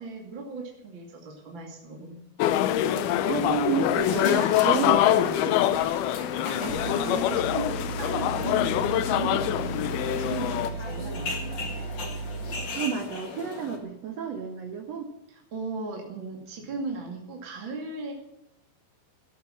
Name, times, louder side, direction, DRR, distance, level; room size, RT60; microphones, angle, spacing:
voice 1, 0.0-2.5 6.4-11.4 15.3-18.1, right 3 dB, 35° right, 0 dB, 2.2 m, -37 dB
sound 1, 2.4-10.7, left 12 dB, 80° left, 2.2 m, -25 dB
sound 2, 2.8-13.8, left 3 dB, 45° left, 1.6 m, -38 dB
voice 2, 3.3-5.6 12.7-15.1, right 6 dB, 80° right, 5 dB, 1.5 m, -31 dB
sound 3, 6.7-12.8, right 4 dB, 55° right, 2.0 m, -36 dB
14.0 x 13.0 x 6.3 m, 0.84 s
omnidirectional pair, 5.3 m